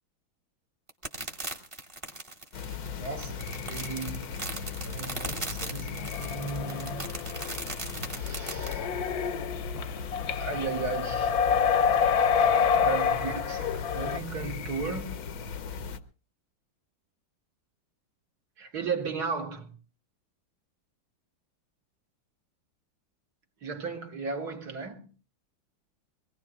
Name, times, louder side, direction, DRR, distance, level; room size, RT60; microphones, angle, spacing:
sound 1, 0.9-8.8, right 2 dB, 20° right, 1.1 m, -38 dB
sound 2, 2.5-16.0, left 6 dB, 90° left, 1.8 m, -37 dB
voice 1, 2.9-4.4 4.8-7.2 8.1-8.9 10.3-11.4 12.8-15.2 18.6-19.8 23.6-25.1, right 5 dB, 55° right, 2.1 m, -35 dB
sound 3, 6.0-7.8 8.2-14.2, left 7 dB, 60° left, 1.2 m, -27 dB
23.5 x 19.0 x 2.4 m
omnidirectional pair, 2.1 m